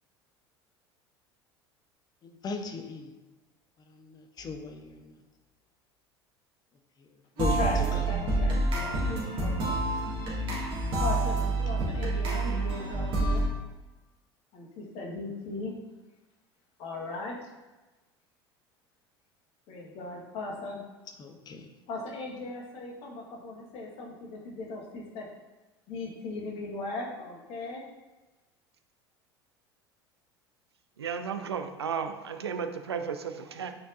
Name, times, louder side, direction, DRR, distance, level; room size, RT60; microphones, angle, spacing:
voice 1, 2.2-3.1 4.0-5.0 7.4-7.6 21.2-21.6, left 4 dB, 30° left, 6 dB, 0.8 m, -36 dB
sound 1, 7.4-13.5, right 2 dB, 40° right, 1.8 m, -28 dB
voice 2, 7.5-9.8 11.0-13.4 14.5-15.7 16.8-17.5 19.7-20.8 21.9-25.3 25.9-27.8, left 2 dB, 50° left, -1 dB, 1.4 m, -38 dB
voice 3, 31.0-33.7, right 6 dB, 75° right, 7 dB, 0.5 m, -34 dB
8.3 x 4.5 x 2.5 m, 1.2 s
figure-of-eight pair, 70°, 13 cm